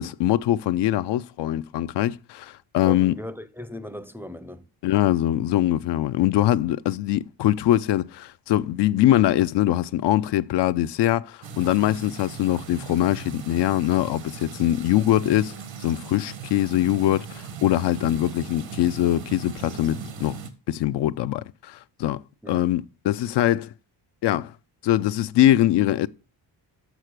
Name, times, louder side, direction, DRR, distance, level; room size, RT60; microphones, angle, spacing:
voice 1, 0.0-3.1 4.8-15.5 15.8-20.4 20.7-23.7 24.2-24.5 24.8-26.1, left 13 dB, 70° left, 0.5 m, -22 dB
voice 2, 2.8-4.7 14.9-15.0 22.4-22.7, equal, 5° right, 0.5 m, -38 dB
sound 1, 11.4-20.5, right 7 dB, 85° right, 1.5 m, -39 dB
6.6 x 6.2 x 6.5 m
cardioid pair, 110°, 44 cm